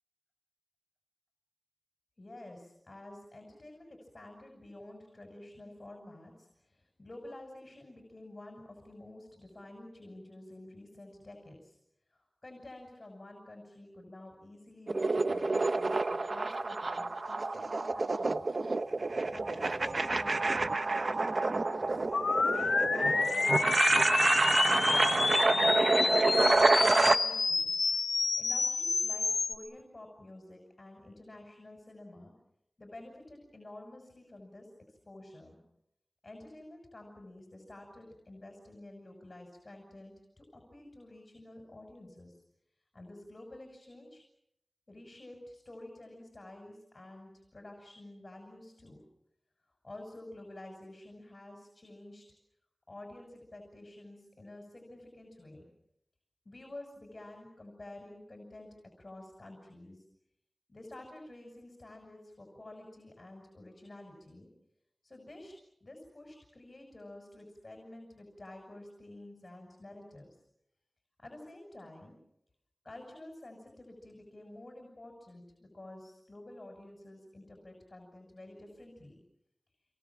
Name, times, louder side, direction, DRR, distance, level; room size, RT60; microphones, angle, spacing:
voice 1, 2.2-11.8 12.1-18.5 19.3-22.0 22.5-23.8 24.4-26.4 26.8-27.7 28.4-32.3 32.8-35.6 36.2-42.4 42.9-44.2 44.9-49.0 49.8-52.2 52.9-55.7 56.4-58.7 59.0-60.0 60.7-64.5 65.0-65.5 65.8-70.4 71.2-72.2 72.8-79.2, left 1 dB, 45° left, 2 dB, 6.7 m, -50 dB
sound 1, 14.9-27.2, right 3 dB, 60° right, 1.2 m, -28 dB
sound 2, 22.1-29.5, left 4 dB, 90° left, 1.6 m, -29 dB
27.5 x 23.0 x 7.5 m, 0.80 s
wide cardioid pair, 55°, 0 cm